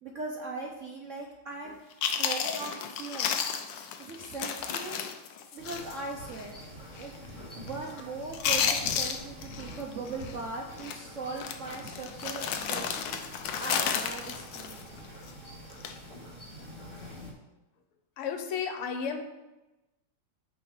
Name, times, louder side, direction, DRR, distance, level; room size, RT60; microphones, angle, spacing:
voice 1, 0.0-3.5 4.0-5.0 5.5-6.5 7.0-13.2 13.6-14.8, right 3 dB, 60° right, -1 dB, 0.8 m, -39 dB
Chewing mastication, 1.7-1.8 2.0-6.0 6.3-6.5 7.0-7.3 7.5-8.0 8.3-9.8 10.1-10.3 10.8-11.0 11.4-15.3 15.7-16.0, left 7 dB, 70° left, 1.2 m, -32 dB
sound 1, 5.6-17.3, equal, 35° left, 3.5 m, -46 dB
voice 2, 18.2-19.2, left 6 dB, 85° left, 6 dB, 1.8 m, -32 dB
8.8 x 3.8 x 6.5 m, 1.0 s
omnidirectional pair, 2.4 m